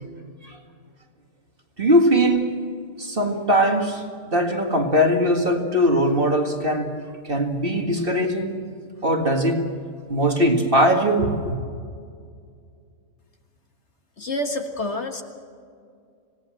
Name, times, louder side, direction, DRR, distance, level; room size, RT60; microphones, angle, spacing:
voice 1, 1.8-2.5 3.0-7.0 7.2-8.6 9.0-9.7 10.1-11.6, equal, 35° right, 2.1 m, -20 dB
voice 2, 14.2-15.2, left 1 dB, 45° left, 1.8 m, -28 dB
26.5 x 17.5 x 7.7 m
omnidirectional pair, 1.6 m